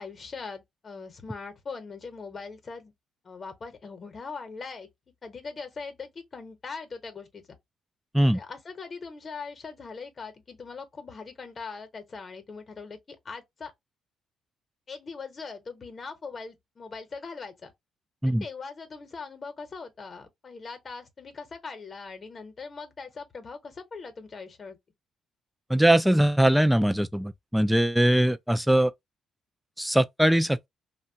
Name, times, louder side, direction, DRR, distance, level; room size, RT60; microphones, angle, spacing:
voice 1, 0.0-2.9 3.2-4.9 5.2-7.4 8.3-13.7 14.9-17.7 18.4-24.8, left 4 dB, 40° left, 0.9 m, -41 dB
voice 2, 25.7-28.9 29.8-30.7, right 1 dB, 5° right, 0.4 m, -21 dB
2.8 x 2.2 x 2.7 m
cardioid pair, 90°, 0 cm